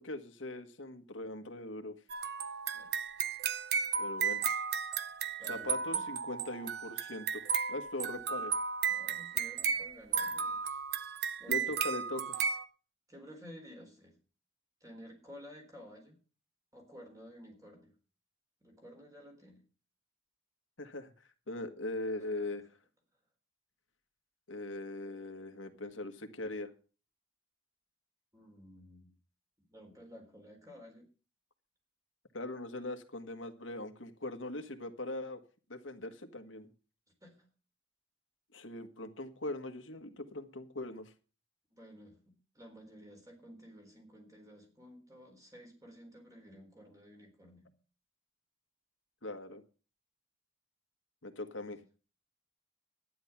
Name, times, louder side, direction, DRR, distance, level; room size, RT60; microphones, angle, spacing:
voice 1, 0.0-1.9 4.0-4.4 5.5-8.5 11.5-12.4 20.8-21.1 21.5-22.7 24.5-26.7 32.3-35.4 35.7-36.7 38.5-41.1 49.2-49.6 51.2-51.8, left 2 dB, 80° left, 6 dB, 1.6 m, -41 dB
sound 1, 2.1-12.6, right 6 dB, 55° right, 0.9 m, -34 dB
voice 2, 5.2-6.0 8.8-10.8 11.4-11.7 13.1-14.2 14.8-16.2 16.7-17.9 18.6-19.6 28.3-29.1 29.7-31.1 37.2-37.4 41.7-42.2 42.5-47.7 51.5-51.8, equal, 15° right, 2 dB, 4.0 m, -53 dB
12.0 x 10.5 x 5.9 m, 0.37 s
head